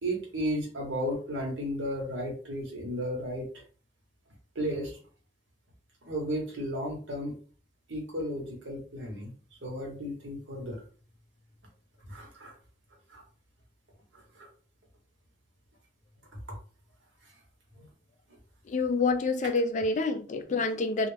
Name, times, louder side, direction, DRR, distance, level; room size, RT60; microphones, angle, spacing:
voice 1, 0.0-3.5 4.5-5.0 6.0-7.4 7.9-9.3 9.6-10.8 12.1-12.5 13.1-13.2 14.1-14.2 17.8-17.9, equal, 80° right, 1 dB, 1.0 m, -34 dB
voice 2, 18.7-21.1, left 3 dB, 40° left, 8 dB, 0.3 m, -27 dB
2.3 x 2.0 x 3.2 m, 0.41 s
head